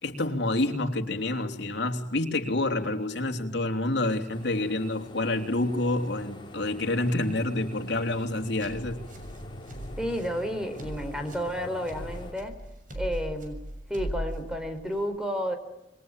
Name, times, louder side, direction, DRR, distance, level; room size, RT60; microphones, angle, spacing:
voice 1, 0.0-9.0, left 2 dB, 70° left, 3.5 m, -28 dB
sound 1, 4.3-12.3, left 1 dB, 30° left, 3.9 m, -44 dB
sound 2, 8.1-15.0, equal, 50° right, 6.7 m, -39 dB
voice 2, 10.0-12.5 12.9-13.6 13.9-15.6, equal, 5° right, 4.3 m, -31 dB
28.5 x 22.0 x 9.2 m
head